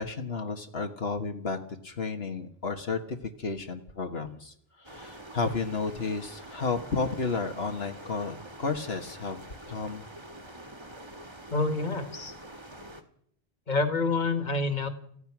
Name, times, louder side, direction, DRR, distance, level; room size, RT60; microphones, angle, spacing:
voice 1, 0.0-1.6 1.8-9.4 9.7-10.0, left 4 dB, 70° left, 5 dB, 1.8 m, -32 dB
sound 1, 4.8-13.0, right 1 dB, 25° right, 2.1 m, -46 dB
voice 2, 11.5-12.3 13.7-14.9, left 3 dB, 45° left, 9 dB, 2.2 m, -27 dB
28.0 x 16.0 x 6.1 m, 0.66 s
omnidirectional pair, 1.1 m